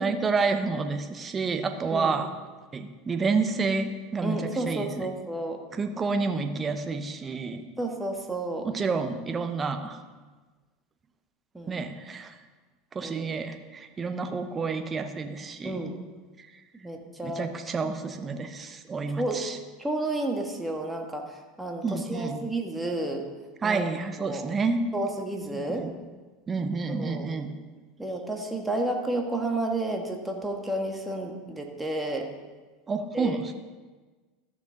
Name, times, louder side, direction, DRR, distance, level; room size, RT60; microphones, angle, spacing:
voice 1, 0.0-2.3 2.7-5.1 5.7-7.7 8.6-10.0 11.7-12.3 12.9-15.8 16.4-16.5 17.2-19.6 21.8-22.5 23.6-24.9 25.5-25.9 26.5-27.5 32.9-33.5, right 4 dB, 25° right, 8 dB, 1.0 m, -29 dB
voice 2, 4.2-5.6 7.8-8.7 11.5-11.8 13.0-13.3 15.6-16.0 16.8-17.5 19.2-19.4 19.8-23.3 23.6-23.8 24.2-24.4 24.9-25.9 26.9-27.3 28.0-32.3 33.1-33.4, right 2 dB, 10° right, 2 dB, 1.5 m, -31 dB
14.0 x 6.1 x 3.9 m, 1.3 s
hypercardioid pair, 90°, 0 cm